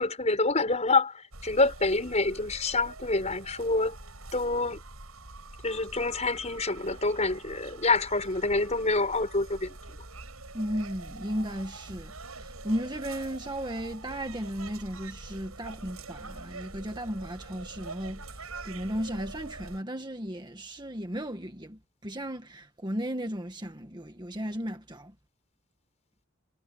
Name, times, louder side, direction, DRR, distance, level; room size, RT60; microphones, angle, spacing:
voice 1, 0.0-3.9 4.3-4.8 5.6-9.8, left 3 dB, 30° left, 6.5 m, -27 dB
sound 1, 1.3-19.8, right 3 dB, 85° right, 7.3 m, -45 dB
voice 2, 10.5-25.1, equal, 20° right, 1.7 m, -35 dB
head